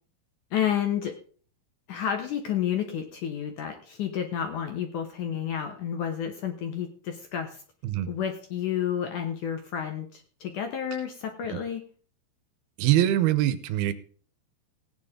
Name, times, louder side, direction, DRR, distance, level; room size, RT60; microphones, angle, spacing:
voice 1, 0.5-1.2 1.9-7.6 8.1-11.8, left 9 dB, 65° left, 5 dB, 2.2 m, -30 dB
voice 2, 12.8-13.9, right 13 dB, 75° right, 13 dB, 2.6 m, -23 dB
17.5 x 9.5 x 3.7 m, 0.43 s
omnidirectional pair, 4.7 m